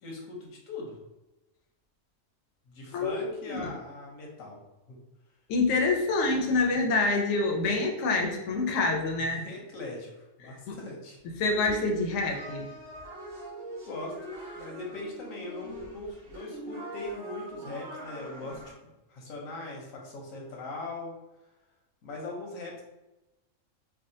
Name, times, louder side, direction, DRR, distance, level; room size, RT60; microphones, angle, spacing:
voice 1, 0.0-1.0 2.7-4.6 4.9-5.0 9.2-11.2 13.8-18.6 19.1-21.1 22.0-22.8, left 2 dB, 90° left, -1 dB, 1.2 m, -40 dB
voice 2, 2.9-3.7 5.5-9.4 10.4-10.8 11.4-12.7, left 3 dB, 70° left, 1 dB, 0.8 m, -27 dB
sound 1, 11.6-18.7, right 1 dB, 85° right, 1.5 m, -42 dB
3.5 x 2.2 x 2.6 m, 1.0 s
omnidirectional pair, 1.4 m